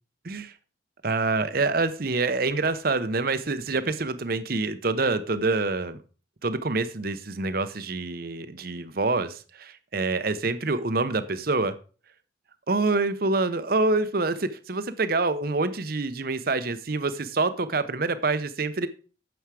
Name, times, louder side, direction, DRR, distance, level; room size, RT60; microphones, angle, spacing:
voice 1, 1.0-6.0 6.4-11.8 12.7-18.9, right 3 dB, 50° right, 12 dB, 0.8 m, -26 dB
9.4 x 7.1 x 4.8 m, 0.38 s
head